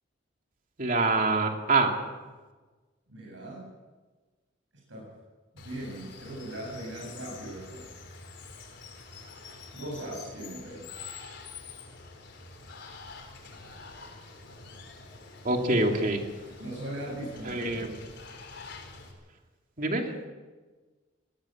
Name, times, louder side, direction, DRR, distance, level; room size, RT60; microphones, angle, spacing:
voice 1, 0.8-1.9 15.4-16.2 17.4-17.9 19.8-20.1, right 2 dB, 45° right, 3 dB, 2.7 m, -25 dB
voice 2, 3.1-3.7 4.9-5.1 5.5-7.9 9.7-10.8 16.6-17.9, right 1 dB, 70° right, -3 dB, 7.9 m, -39 dB
Water, 5.6-19.1, left 4 dB, 65° left, 4.4 m, -46 dB
20.5 x 17.5 x 7.8 m, 1.3 s
head